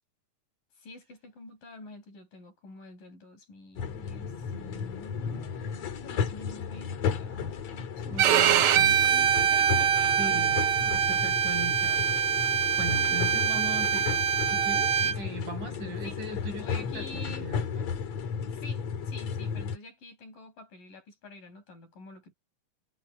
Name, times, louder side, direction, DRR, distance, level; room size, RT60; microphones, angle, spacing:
voice 1, 0.8-7.7 8.0-10.5 12.9-13.3 15.0-15.3 16.0-16.2 16.6-17.5 18.5-22.3, left 2 dB, 85° left, 8.6 m, -47 dB
sound 1, 3.8-19.8, left 6 dB, 55° left, 2.8 m, -34 dB
voice 2, 8.1-9.1 10.2-12.2 12.8-17.9, right 1 dB, 70° right, 8.5 m, -39 dB
Bowed string instrument, 8.2-15.2, right 8 dB, 90° right, 1.2 m, -24 dB
omnidirectional pair, 3.8 m